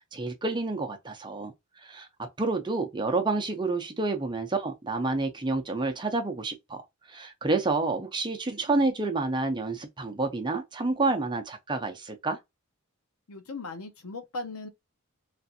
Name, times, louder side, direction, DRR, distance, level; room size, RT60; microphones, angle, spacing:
voice 1, 0.1-1.5 1.8-6.8 7.1-12.4, right 3 dB, 20° right, 0.6 m, -29 dB
voice 2, 13.3-14.7, left 3 dB, 90° left, 0.8 m, -38 dB
3.3 x 2.5 x 2.6 m
head